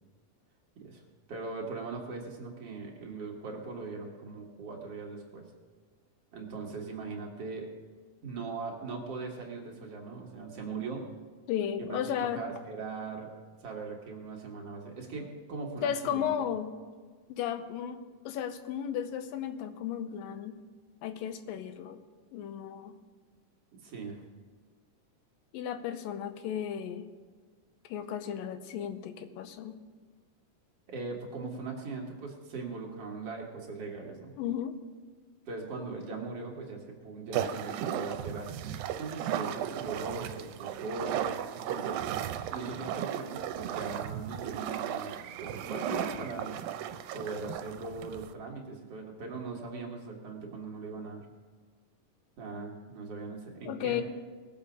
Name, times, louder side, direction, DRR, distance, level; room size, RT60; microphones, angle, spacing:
voice 1, 1.3-5.5 6.3-7.7 8.2-11.1 11.8-13.3 13.6-16.3 23.8-24.2 30.9-34.3 35.5-42.0 42.5-45.1 45.4-46.6 47.1-51.3 52.4-54.0, right 4 dB, 50° right, -1 dB, 2.2 m, -40 dB
voice 2, 11.5-12.4 15.8-16.7 17.3-20.5 21.0-22.0 22.3-22.9 25.5-27.0 27.8-29.8 34.4-34.8 53.7-54.0, left 9 dB, 80° left, 9 dB, 2.4 m, -34 dB
sound 1, 37.3-48.3, right 10 dB, 90° right, 2.4 m, -35 dB
20.0 x 7.3 x 5.0 m, 1.5 s
omnidirectional pair, 4.1 m